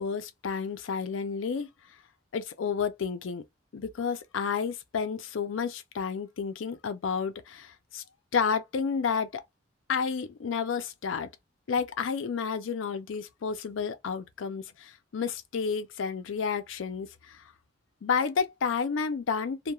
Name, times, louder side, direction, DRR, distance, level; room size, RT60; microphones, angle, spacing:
voice 1, 0.0-1.7 2.3-3.4 3.7-8.0 8.3-9.4 9.9-11.3 11.7-17.4 18.0-19.7, left 6 dB, 75° left, 0.4 m, -31 dB
2.3 x 2.2 x 2.9 m
head